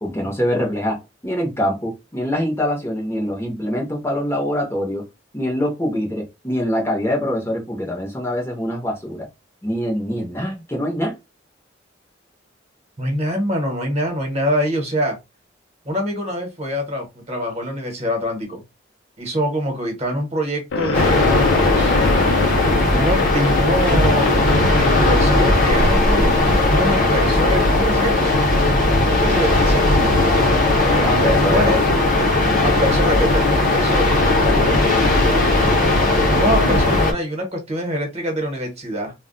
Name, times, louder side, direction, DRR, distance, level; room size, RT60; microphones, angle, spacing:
voice 1, 0.0-5.1 5.3-9.3 9.6-11.2 30.8-31.8 34.5-34.7, equal, 15° left, 0.8 m, -24 dB
voice 2, 13.0-15.2 15.8-18.6 19.2-21.9 22.9-24.4 24.7-28.3 29.0-29.9 31.4-31.8 32.6-34.2 36.3-39.1, equal, 35° right, 1.0 m, -24 dB
sound 1, 20.7-26.8, left 3 dB, 75° left, 0.4 m, -25 dB
sound 2, 20.9-37.1, left 2 dB, 45° left, 0.9 m, -17 dB
2.3 x 2.1 x 3.8 m
head